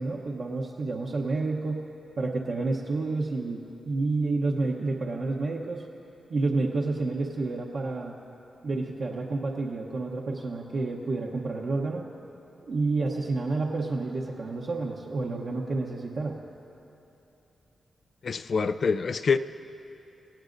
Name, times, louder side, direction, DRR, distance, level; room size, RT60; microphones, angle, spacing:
voice 1, 0.0-1.9 2.2-5.8 6.3-8.1 8.6-12.0 12.7-16.4, right 3 dB, 50° right, -3 dB, 0.9 m, -29 dB
voice 2, 18.2-19.4, left 5 dB, 50° left, 11 dB, 0.3 m, -25 dB
26.5 x 17.0 x 2.6 m, 3.0 s
wide cardioid pair, 150°, 0 cm